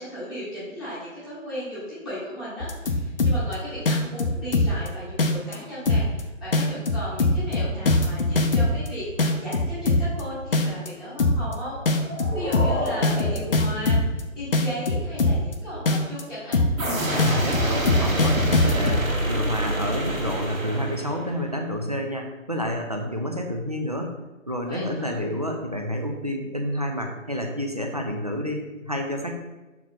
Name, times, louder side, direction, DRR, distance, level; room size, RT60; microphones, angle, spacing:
voice 1, 0.0-16.6 24.6-25.2, equal, ahead, -16 dB, 1.0 m, -36 dB
sound 1, 2.6-3.5 3.9-4.9 5.2-5.5 5.9-6.2 6.5-8.9 9.2-10.2 10.5-10.9 11.2-11.5 11.9-14.2 14.5-15.5 15.9-16.2 16.5-16.9 17.2-19.0, left 2 dB, 45° left, 0.6 m, -21 dB
sound 2, 11.7-14.6, left 2 dB, 75° left, 1.3 m, -33 dB
sound 3, 16.8-21.4, right 1 dB, 80° right, 1.7 m, -26 dB
voice 2, 17.1-24.1 24.5-29.3, equal, 30° right, 2 dB, 0.5 m, -29 dB
5.9 x 4.5 x 3.7 m, 1.1 s
figure-of-eight pair, 155°, 40 cm